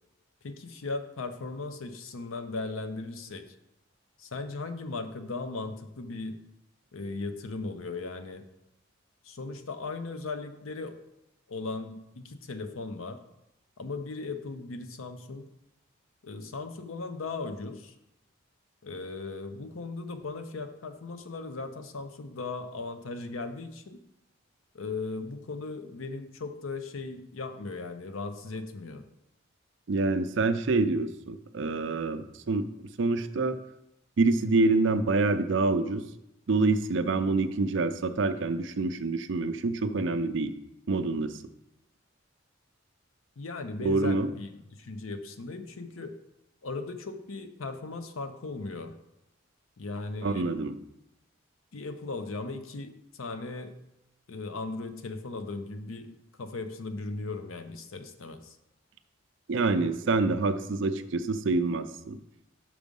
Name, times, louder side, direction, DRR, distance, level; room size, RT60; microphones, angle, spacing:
voice 1, 0.4-3.5 4.2-6.4 6.9-8.4 9.2-11.0 11.5-13.2 13.8-15.5 16.2-17.9 18.8-24.0 24.7-29.0 43.4-46.2 46.6-48.9 49.8-50.6 51.7-53.7 54.3-58.6, left 3 dB, 85° left, 8 dB, 0.7 m, -37 dB
voice 2, 29.9-32.7 33.0-33.6 34.2-36.0 36.5-40.5 40.9-41.3 43.8-44.3 50.2-50.8 59.5-62.2, right 3 dB, 60° right, 10 dB, 0.5 m, -26 dB
6.1 x 5.0 x 5.3 m, 0.85 s
head